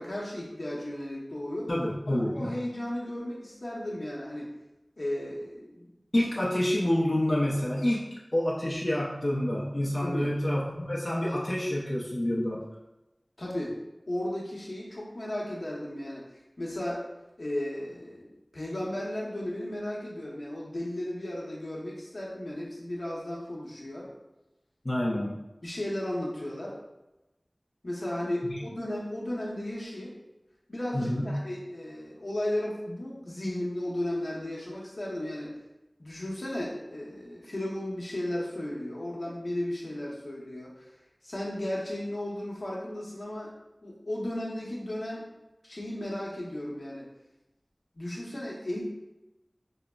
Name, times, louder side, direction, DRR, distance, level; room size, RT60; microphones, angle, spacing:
voice 1, 0.0-1.7 2.1-4.5 5.0-5.9 10.0-10.3 13.4-13.8 14.1-16.2 16.6-17.1 17.4-24.1 25.6-26.8 27.8-30.1 30.7-35.6 36.0-40.7 41.2-43.5 43.8-45.3 45.6-47.1 47.9-48.8, left 1 dB, 75° left, -5 dB, 0.8 m, -35 dB
voice 2, 1.7-2.5 6.1-12.6 24.8-25.4 28.5-28.6 30.9-31.4, left 1 dB, 50° left, -6 dB, 0.5 m, -28 dB
4.9 x 2.0 x 2.2 m, 0.97 s
wide cardioid pair, 40°, 0 cm